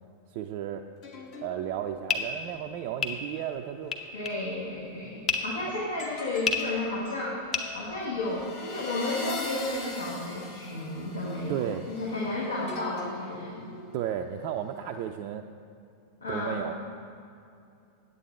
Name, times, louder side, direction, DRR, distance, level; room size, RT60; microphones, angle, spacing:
voice 1, 0.3-0.9 1.4-3.9 11.5-11.9 13.9-15.5 16.3-16.7, right 10 dB, 45° right, 4 dB, 0.3 m, -33 dB
sound 1, 1.0-4.7 6.0-14.5 14.9-15.2, left 2 dB, 45° left, 1.2 m, -43 dB
sound 2, 1.7-8.5, left 5 dB, 25° left, 0.7 m, -33 dB
voice 2, 4.1-7.4 7.7-13.7 16.2-16.6, left 2 dB, 75° left, -5 dB, 1.4 m, -32 dB
9.0 x 8.4 x 4.3 m, 2.5 s
figure-of-eight pair, 90°, 0 cm